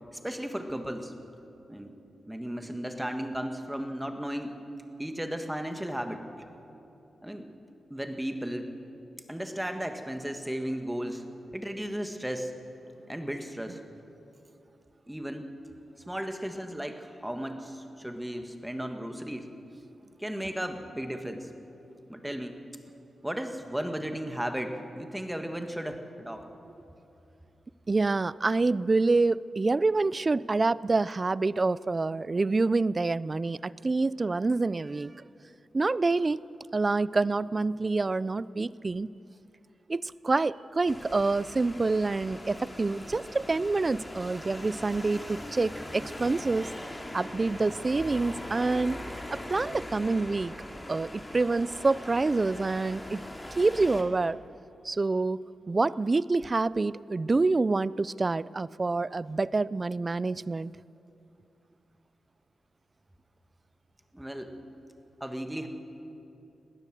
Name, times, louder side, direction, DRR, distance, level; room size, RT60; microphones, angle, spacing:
voice 1, 0.1-1.1 1.7-1.9 2.3-4.6 5.0-6.3 7.2-7.5 7.9-8.7 9.3-11.2 11.5-12.5 13.1-13.8 15.1-15.5 16.1-19.5 20.2-21.5 22.1-22.6 23.2-26.4 64.1-64.5 65.2-65.7, equal, 5° right, 6 dB, 1.5 m, -35 dB
voice 2, 27.9-35.1 35.7-36.4 36.7-39.1 39.9-46.7 47.1-49.0 49.3-50.5 50.9-53.2 53.6-54.4 54.8-55.4 55.7-60.7, right 3 dB, 30° right, 20 dB, 0.4 m, -27 dB
sound 1, 40.9-54.0, left 1 dB, 15° left, 2.3 m, -41 dB
20.5 x 17.0 x 7.7 m, 2.8 s
wide cardioid pair, 110°, 0 cm